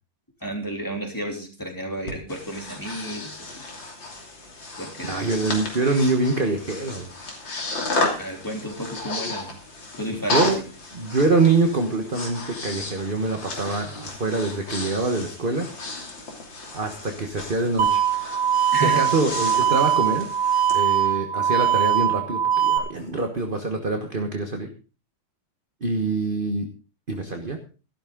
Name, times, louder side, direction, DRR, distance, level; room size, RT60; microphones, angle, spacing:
voice 1, 0.4-3.5 4.8-5.2 8.2-9.5 10.0-10.5 18.7-19.0, right 1 dB, 10° left, 1 dB, 3.2 m, -32 dB
Breathing, 2.1-20.8, left 2 dB, 60° left, 3.6 m, -33 dB
voice 2, 5.0-7.1 10.3-10.6 10.9-15.7 16.7-18.1 18.9-20.3 20.7-24.7 25.8-26.7 27.1-27.6, right 3 dB, 30° right, 4 dB, 1.3 m, -24 dB
sound 1, 17.8-22.8, right 9 dB, 55° right, 2.1 m, -21 dB
14.0 x 12.5 x 3.8 m, 0.34 s
omnidirectional pair, 2.3 m